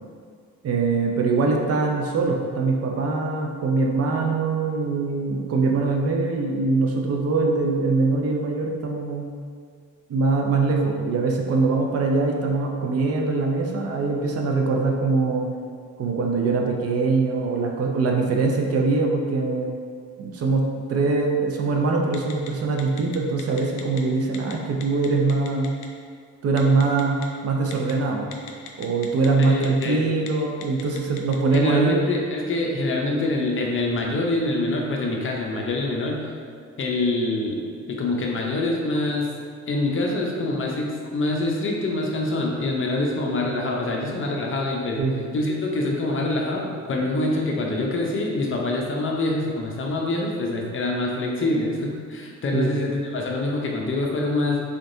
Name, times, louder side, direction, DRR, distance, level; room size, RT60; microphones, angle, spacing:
voice 1, 0.6-9.3 10.1-15.5 16.0-19.7 20.2-20.6 20.9-25.7 26.4-27.2 27.4-28.3 28.8-32.0 45.0-45.3 52.5-52.8, right 3 dB, 55° right, 1 dB, 0.6 m, -23 dB
Telephone, 22.1-22.5 22.8-24.0 24.3-24.5 24.8-25.9 26.6-27.2 27.7-27.9 28.3-29.9 30.2-30.3 30.6-31.6, left 9 dB, 80° left, 0.5 m, -38 dB
voice 2, 29.4-30.0 31.5-36.2 36.8-37.6 37.9-39.3 39.7-45.0 45.3-54.6, left 2 dB, 45° left, -1 dB, 0.7 m, -25 dB
3.8 x 3.4 x 2.6 m, 2.1 s
cardioid pair, 90°, 30 cm